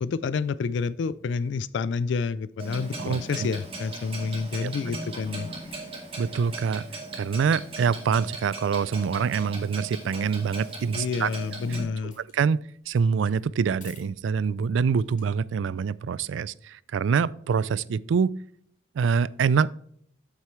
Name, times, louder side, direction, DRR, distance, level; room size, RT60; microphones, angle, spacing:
voice 1, 0.0-5.5 10.9-12.2, left 5 dB, 75° left, 0.3 m, -29 dB
Clock, 2.6-11.8, right 2 dB, 30° right, 2.0 m, -38 dB
voice 2, 3.0-3.5 4.6-4.7 6.2-6.8 7.1-11.3 11.7-11.8 12.0-18.4 19.0-19.7, right 6 dB, 85° right, 0.3 m, -25 dB
sound 1, 4.6-15.7, left 4 dB, 40° left, 3.1 m, -58 dB
8.3 x 7.5 x 3.2 m
head